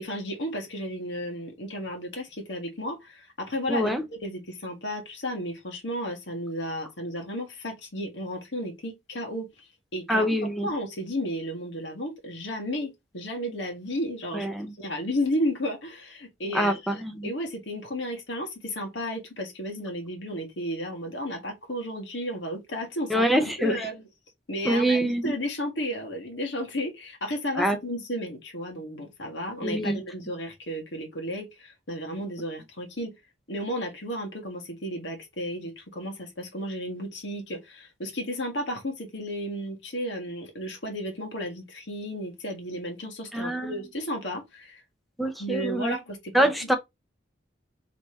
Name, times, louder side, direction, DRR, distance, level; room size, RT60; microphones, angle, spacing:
voice 1, 0.0-9.5 9.9-10.3 10.6-14.5 14.8-23.3 23.6-24.0 24.5-33.1 33.5-44.8 45.4-46.5, equal, 80° left, 1.5 m, -33 dB
voice 2, 3.7-4.0 10.1-10.7 14.3-14.7 16.5-17.3 23.1-23.9 24.6-25.3 27.5-27.8 29.6-30.0 43.3-43.7 45.2-46.0 46.3-46.7, right 1 dB, ahead, 0.6 m, -25 dB
3.3 x 3.3 x 4.3 m
head